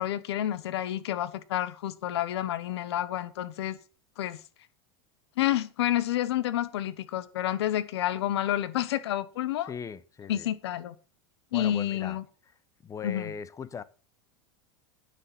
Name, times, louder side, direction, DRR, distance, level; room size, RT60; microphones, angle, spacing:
voice 1, 0.0-3.8 4.2-4.4 5.4-9.7 10.3-10.9 11.5-12.2 13.0-13.3, left 12 dB, 80° left, 1.1 m, -29 dB
voice 2, 9.6-10.5 11.5-12.2 12.8-13.8, left 6 dB, 25° left, 0.9 m, -39 dB
9.7 x 7.2 x 6.0 m
supercardioid pair, 110°, 14 cm